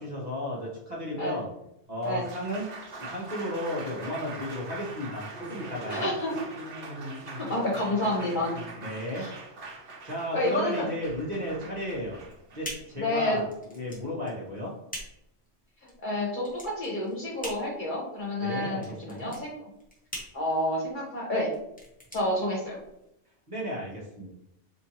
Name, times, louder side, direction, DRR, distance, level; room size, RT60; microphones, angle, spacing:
voice 1, 0.0-1.5 1.9-2.7 3.0-6.1 8.8-9.3 10.0-12.2 12.5-13.4 13.7-14.7 18.4-19.3 23.5-24.3, left 1 dB, 40° right, -5 dB, 1.3 m, -34 dB
Applause, 1.8-14.1, right 2 dB, 90° right, 1.2 m, -42 dB
voice 2, 5.9-6.3 7.4-8.6 9.2-9.3 10.3-10.9 13.0-13.4 15.8-19.6 20.3-21.5 22.1-22.8, left 1 dB, 45° left, -3 dB, 1.3 m, -29 dB
sound 1, 11.8-23.1, equal, 10° left, 0.9 m, -44 dB
4.3 x 3.0 x 2.9 m, 0.81 s
omnidirectional pair, 1.1 m